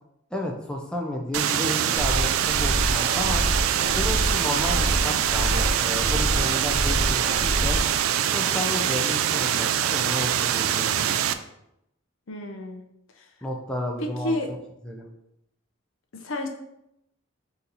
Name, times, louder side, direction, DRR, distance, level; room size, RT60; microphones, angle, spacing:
voice 1, 0.3-3.5 3.9-7.8 8.3-11.2 13.4-14.6 14.8-15.1, left 1 dB, 5° left, 0 dB, 0.4 m, -32 dB
sound 1, 1.3-11.3, right 10 dB, 85° right, 0.3 m, -24 dB
sound 2, 2.0-8.0, equal, 35° right, 0.8 m, -27 dB
voice 2, 12.3-12.8 13.2-13.3 14.0-14.5 16.1-16.5, left 1 dB, 70° left, 4 dB, 0.6 m, -30 dB
3.9 x 2.8 x 3.9 m, 0.81 s
head